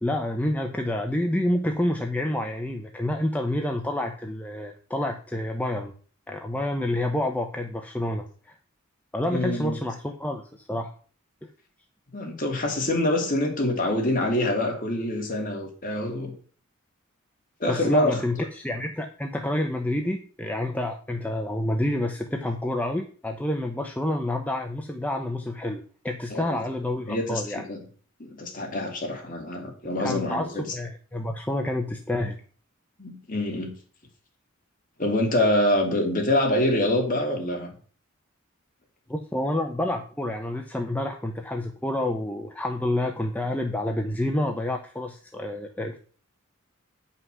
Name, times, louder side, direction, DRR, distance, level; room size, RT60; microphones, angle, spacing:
voice 1, 0.0-5.9 6.3-8.5 9.1-10.9 11.4-11.5 17.7-27.6 30.0-32.4 39.1-46.0, left 1 dB, 5° left, 0.7 m, -28 dB
voice 2, 9.3-9.8 12.1-16.3 17.6-18.5 26.3-26.6 27.1-27.8 28.2-30.7 33.0-33.7 35.0-37.7, left 1 dB, 40° left, 2.8 m, -25 dB
9.6 x 5.6 x 6.2 m
head